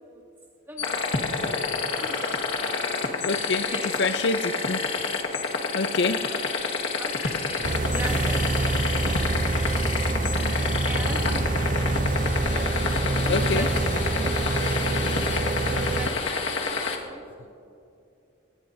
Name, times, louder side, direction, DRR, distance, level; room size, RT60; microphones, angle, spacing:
voice 1, 0.7-1.1 1.9-2.8 3.7-4.0 6.1-6.4 7.0-9.3 10.8-11.6 12.5-12.7 13.2-15.0 15.4-16.4 16.7-17.5, equal, 10° right, -1 dB, 2.1 m, -40 dB
sound 1, 0.8-17.0, left 4 dB, 70° left, 1.6 m, -28 dB
voice 2, 3.2-3.7 4.0-4.9 5.7-6.3 11.3-11.4 12.2-12.9 13.3-13.7, left 3 dB, 55° left, 11 dB, 0.5 m, -27 dB
sound 2, 7.6-16.1, right 2 dB, 40° right, 0.5 m, -26 dB
30.0 x 18.0 x 2.6 m, 2.6 s
head